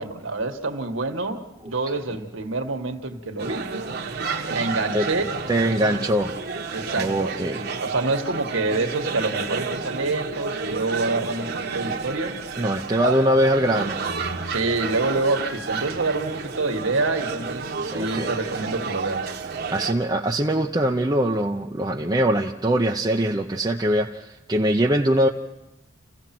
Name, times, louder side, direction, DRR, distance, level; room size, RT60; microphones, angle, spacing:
voice 1, 0.0-3.7 4.5-5.3 5.7-5.8 6.7-12.4 13.0-13.2 14.5-19.3, right 3 dB, 80° right, 1.8 m, -27 dB
sound 1, 3.4-19.9, right 4 dB, 50° right, 1.4 m, -31 dB
voice 2, 5.5-6.3 7.0-7.6 12.6-14.0 17.9-18.4 19.7-25.3, right 1 dB, 20° right, 0.7 m, -22 dB
28.5 x 16.0 x 6.0 m
head